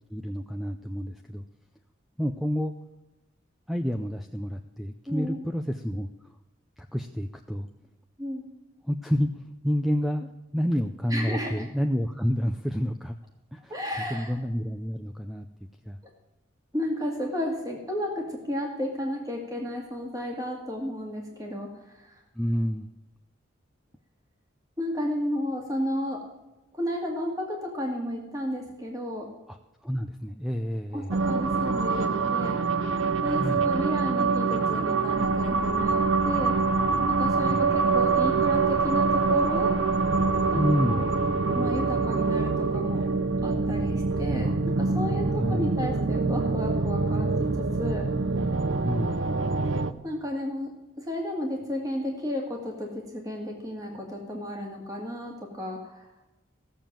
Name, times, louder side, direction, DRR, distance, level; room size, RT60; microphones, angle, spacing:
voice 1, 0.0-1.4 2.2-2.7 3.7-6.4 6.8-7.7 8.8-13.2 13.5-13.8 14.1-15.5 15.8-16.0 22.3-23.0 29.5-29.6 29.8-31.1 33.3-33.7 37.4-37.7 40.5-41.1 45.4-45.7 48.8-49.3, equal, ahead, 6 dB, 0.5 m, -29 dB
voice 2, 5.1-5.4 8.2-8.5 11.1-11.7 13.7-14.3 16.7-22.2 24.8-26.2 26.7-29.3 30.9-32.6 33.2-36.5 37.1-39.7 40.5-41.1 41.6-43.1 43.4-48.1 50.0-50.7 51.0-56.1, left 1 dB, 15° right, 0 dB, 2.2 m, -33 dB
sound 1, 31.1-49.9, right 4 dB, 75° right, 0.8 m, -25 dB
sound 2, 35.1-40.5, left 1 dB, 40° left, 1.0 m, -41 dB
15.5 x 7.1 x 7.5 m, 1.0 s
head